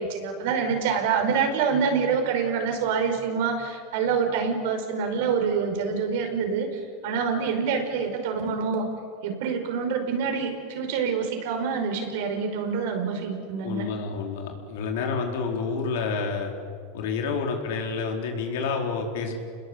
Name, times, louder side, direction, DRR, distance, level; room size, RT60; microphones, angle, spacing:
voice 1, 0.0-8.9 9.2-13.9, right 6 dB, 70° right, 4 dB, 5.3 m, -26 dB
voice 2, 13.6-16.5 16.9-19.3, left 5 dB, 70° left, 3 dB, 4.6 m, -29 dB
29.0 x 21.0 x 8.3 m, 2.3 s
hypercardioid pair, 115°, 0 cm